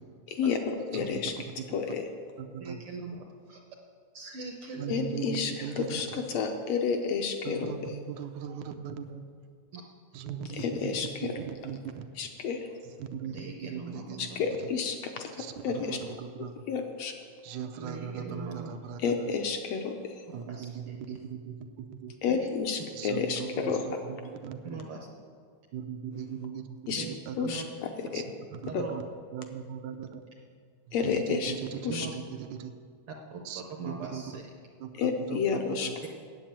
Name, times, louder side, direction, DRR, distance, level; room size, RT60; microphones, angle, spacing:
voice 1, 0.4-1.3 1.7-2.0 4.9-7.7 10.5-11.4 12.2-12.7 14.2-16.0 16.7-17.1 19.0-20.1 22.2-23.8 26.9-27.1 27.4-28.2 28.7-28.8 30.9-31.5 31.8-32.1 35.0-35.9, left 6 dB, 75° left, 4 dB, 1.7 m, -30 dB
voice 2, 0.9-1.8 2.4-2.8 4.8-6.2 7.4-9.3 10.1-12.1 12.8-14.3 14.6-14.7 15.4-16.5 17.4-19.1 20.3-22.1 22.9-24.6 25.7-27.6 28.1-28.2 28.5-29.0 29.3-30.2 30.9-32.7 33.5-34.4 34.8-36.0, right 8 dB, 80° right, 7 dB, 2.1 m, -39 dB
voice 3, 2.6-3.6 4.1-5.2 9.7-9.8 13.2-14.4 15.8-15.9 17.8-18.8 20.3-21.2 22.3-22.5 24.6-25.1 27.0-27.1 27.4-27.6 28.7-28.9 31.9-32.1 33.1-34.4, right 4 dB, 65° right, 2 dB, 1.4 m, -41 dB
9.2 x 7.4 x 8.8 m, 2.1 s
omnidirectional pair, 3.3 m